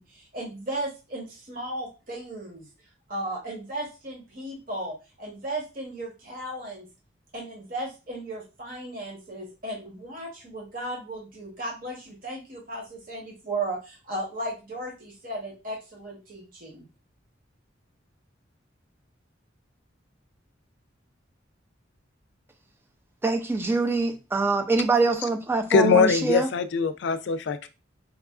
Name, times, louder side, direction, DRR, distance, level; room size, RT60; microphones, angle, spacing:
voice 1, 0.0-2.7 3.1-6.9 7.3-16.8, right 1 dB, 45° right, 1.0 m, -35 dB
voice 2, 23.2-26.5, right 3 dB, 10° right, 0.4 m, -24 dB
voice 3, 25.7-27.7, left 5 dB, 65° left, 0.4 m, -22 dB
4.7 x 2.4 x 2.3 m
head